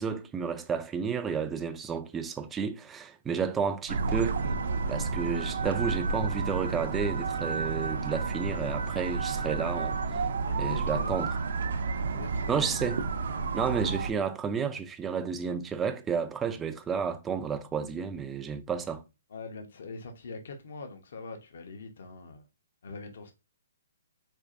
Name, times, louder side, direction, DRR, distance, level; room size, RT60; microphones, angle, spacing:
voice 1, 0.0-4.4 4.9-10.2 10.6-11.3 12.5-13.0 13.5-19.0, right 6 dB, 10° right, 0.3 m, -31 dB
sound 1, 3.9-14.1, right 4 dB, 65° right, 0.5 m, -31 dB
voice 2, 10.4-11.3 12.0-12.9 19.3-22.4 22.8-23.3, left 3 dB, 65° left, 0.8 m, -43 dB
4.4 x 2.4 x 2.5 m
hypercardioid pair, 155°, 0 cm